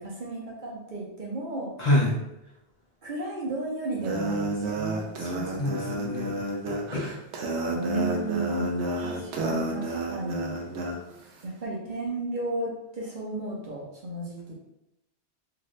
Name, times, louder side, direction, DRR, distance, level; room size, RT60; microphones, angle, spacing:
voice 1, 0.0-1.7 3.0-5.1 5.3-5.8 7.7-10.6 11.4-14.5, right 2 dB, 50° right, -4 dB, 0.8 m, -34 dB
voice 2, 1.8-2.2 5.2-6.3 6.7-7.1, left 1 dB, 45° left, -5 dB, 0.7 m, -27 dB
sound 1, 4.0-11.0, right 1 dB, 85° right, 0.9 m, -30 dB
2.8 x 2.5 x 3.1 m, 0.88 s
omnidirectional pair, 1.1 m